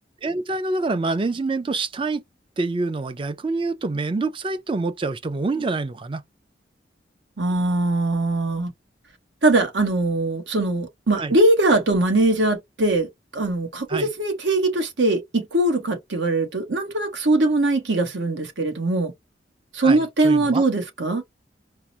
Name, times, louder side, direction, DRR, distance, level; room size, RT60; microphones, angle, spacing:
voice 1, 0.2-2.2 2.6-6.2 11.2-11.3 13.9-14.1 19.8-20.6, right 3 dB, 30° right, 0.4 m, -26 dB
voice 2, 7.4-8.7 9.4-19.1 19.7-21.2, right 2 dB, 70° right, 1.1 m, -21 dB
4.7 x 2.0 x 2.8 m
head